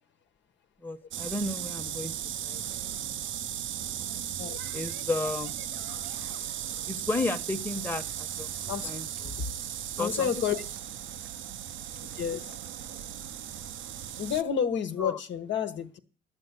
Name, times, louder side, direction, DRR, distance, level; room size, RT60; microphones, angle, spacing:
voice 1, 0.8-2.1 2.4-3.2 3.5-3.6 4.7-5.5 6.9-9.3 10.0-10.3 15.0-15.2, left 2 dB, 10° left, 4 dB, 1.1 m, -33 dB
sound 1, 1.1-14.4, right 10 dB, 75° right, 0.6 m, -36 dB
voice 2, 5.9-6.2 8.7-8.9 10.0-10.6 12.1-12.5 14.2-16.0, left 8 dB, 65° left, 6 dB, 1.2 m, -30 dB
11.5 x 7.1 x 8.0 m, 0.42 s
cardioid pair, 90°, 20 cm